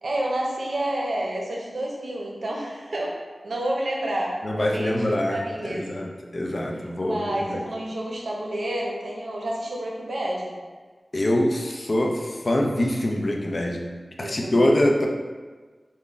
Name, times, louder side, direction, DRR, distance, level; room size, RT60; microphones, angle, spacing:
voice 1, 0.0-3.2 3.4-6.0 7.0-10.5 14.2-14.7, right 1 dB, 85° right, -2 dB, 0.6 m, -29 dB
voice 2, 4.4-7.7 11.1-13.9 14.2-15.1, left 1 dB, 55° left, 1 dB, 0.4 m, -24 dB
3.8 x 2.1 x 3.6 m, 1.4 s
wide cardioid pair, 60°, 0 cm